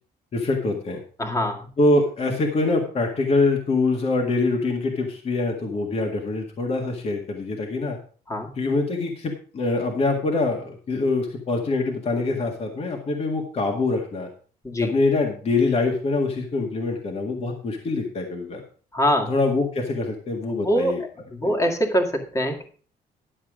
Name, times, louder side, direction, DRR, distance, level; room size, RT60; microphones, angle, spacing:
voice 1, 0.3-1.0 1.8-8.0 8.6-14.3 14.8-18.6 19.3-21.0 21.4-21.5, left 3 dB, 35° left, 1 dB, 1.8 m, -24 dB
voice 2, 1.2-1.7 8.3-8.5 14.6-14.9 18.9-19.3 20.6-21.0 21.3-22.7, equal, 20° left, 3 dB, 2.0 m, -23 dB
11.5 x 7.3 x 5.0 m, 0.41 s
cardioid pair, 150°, 17 cm